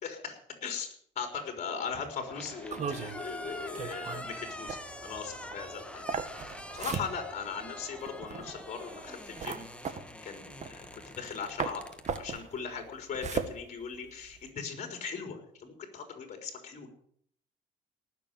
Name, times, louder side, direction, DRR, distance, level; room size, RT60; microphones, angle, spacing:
voice 1, 0.0-6.1 6.4-16.9, left 6 dB, 45° left, 5 dB, 4.0 m, -39 dB
sound 1, 1.9-12.2, left 1 dB, 5° left, 1.5 m, -46 dB
sound 2, 2.2-9.2, right 1 dB, 10° right, 3.1 m, -50 dB
sound 3, 2.7-11.3 11.6-14.5, right 6 dB, 45° right, 1.8 m, -38 dB
18.5 x 6.9 x 9.2 m, 0.64 s
cardioid pair, 110°, 17 cm